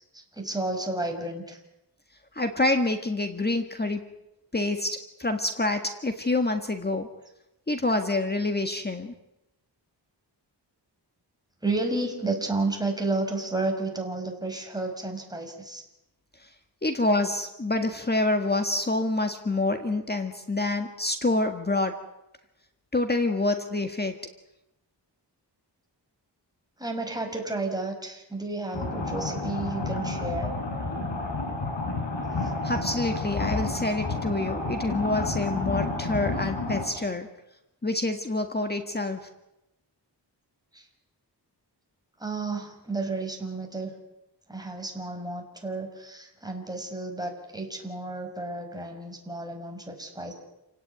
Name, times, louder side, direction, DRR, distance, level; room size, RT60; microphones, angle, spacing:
voice 1, 0.1-1.6 11.6-15.8 26.8-30.5 32.4-32.5 40.7-40.9 42.2-43.9 44.5-50.3, right 2 dB, 10° right, 2 dB, 5.6 m, -32 dB
voice 2, 2.3-4.1 4.5-7.1 7.7-9.1 16.4-16.5 16.8-22.0 22.9-24.1 32.6-37.3 37.8-39.2, left 2 dB, 25° left, 6 dB, 1.7 m, -27 dB
sound 1, 28.7-36.8, left 3 dB, 80° left, 7.0 m, -30 dB
28.5 x 18.0 x 9.6 m, 0.91 s
wide cardioid pair, 150°, 43 cm